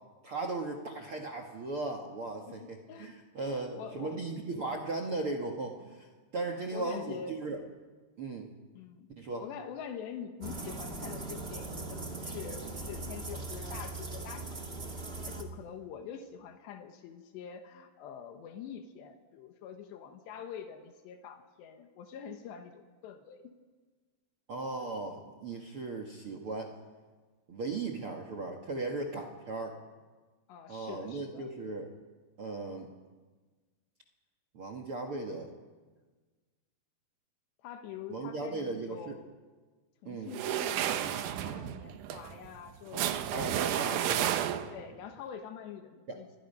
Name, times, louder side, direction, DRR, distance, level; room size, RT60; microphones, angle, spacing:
voice 1, 0.2-7.6 8.2-8.5 9.2-9.4 24.5-26.8 27.5-29.8 30.7-31.9 32.4-32.9 34.5-35.5 38.1-39.1 40.0-40.3 43.3-44.2 46.1-46.2, right 3 dB, 55° right, 4 dB, 1.5 m, -37 dB
voice 2, 2.5-3.1 3.4-4.2 6.5-7.4 8.8-9.1 9.4-14.9 15.3-23.5 30.5-31.5 37.6-39.3 40.0-44.0 44.7-46.3, left 8 dB, 85° left, 6 dB, 3.5 m, -45 dB
sound 1, 10.4-15.4, right 2 dB, 35° right, 0.8 m, -40 dB
sound 2, 40.3-44.9, right 11 dB, 90° right, 1.7 m, -32 dB
28.5 x 22.5 x 5.5 m, 1.4 s
omnidirectional pair, 4.8 m